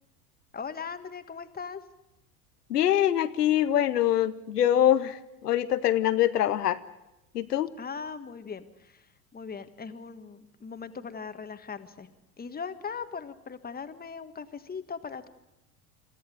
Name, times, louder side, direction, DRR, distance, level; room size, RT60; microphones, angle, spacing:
voice 1, 0.5-1.8 7.8-12.1 12.4-15.3, left 5 dB, 20° left, 9 dB, 1.6 m, -39 dB
voice 2, 2.7-6.8 7.3-7.7, left 11 dB, 90° left, 11 dB, 0.9 m, -24 dB
26.0 x 14.0 x 9.3 m, 0.95 s
hypercardioid pair, 80°, 46 cm